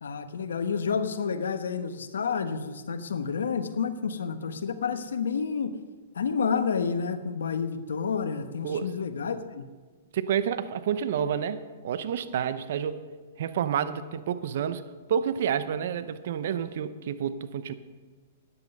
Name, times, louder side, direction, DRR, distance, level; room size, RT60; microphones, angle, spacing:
voice 1, 0.0-5.8 6.1-9.6, left 6 dB, 80° left, 10 dB, 1.1 m, -29 dB
voice 2, 10.1-13.0 13.4-14.8 15.1-17.7, right 8 dB, 65° right, 12 dB, 0.8 m, -29 dB
13.0 x 9.8 x 5.4 m, 1.5 s
hypercardioid pair, 125°, 0 cm